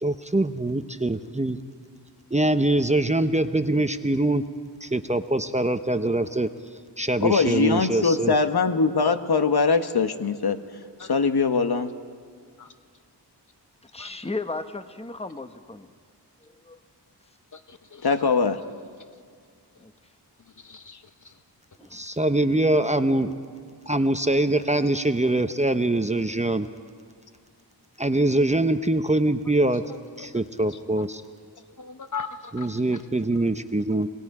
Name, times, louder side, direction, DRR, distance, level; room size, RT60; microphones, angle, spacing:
voice 1, 0.0-1.6 2.3-4.4 4.8-6.5 7.0-8.3 21.9-23.3 23.9-26.7 28.0-29.8 30.2-31.2 32.5-34.1, right 2 dB, 15° right, 9 dB, 0.7 m, -23 dB
voice 2, 7.2-10.6 11.0-11.9 18.0-18.6, left 4 dB, 60° left, 8 dB, 1.2 m, -22 dB
voice 3, 13.9-15.9 16.4-16.8 19.8-19.9 21.8-22.0, left 3 dB, 15° left, 9 dB, 1.0 m, -35 dB
voice 4, 17.5-18.1 20.6-21.0 21.2-21.4 28.7-28.8 29.9-30.7 31.8-33.0, left 5 dB, 45° left, 9 dB, 0.8 m, -40 dB
28.0 x 20.0 x 4.9 m, 2.1 s
wide cardioid pair, 60°, 42 cm